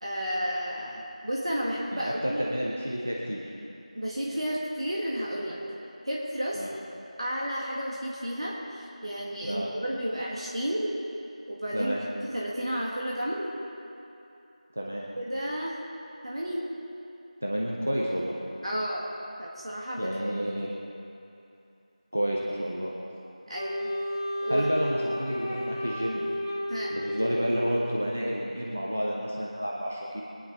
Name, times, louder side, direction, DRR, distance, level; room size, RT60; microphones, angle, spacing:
voice 1, 0.0-2.4 3.9-5.6 6.0-6.6 7.2-10.9 11.5-11.9 12.2-13.5 15.2-15.8 16.2-16.7 18.6-19.1 19.4-20.1 23.5-23.9 24.4-24.9 26.7-27.0, equal, 45° right, -4 dB, 1.9 m, -32 dB
voice 2, 1.9-3.4 6.5-6.7 9.4-9.7 11.7-12.0 14.7-15.1 17.4-18.4 20.0-20.7 22.1-22.9 24.5-26.3 26.9-30.2, equal, 15° right, -3 dB, 0.5 m, -30 dB
Wind instrument woodwind instrument, 23.5-28.2, left 1 dB, 25° left, 1.0 m, -33 dB
22.5 x 10.0 x 3.9 m, 2.7 s
figure-of-eight pair, 175°, 4 cm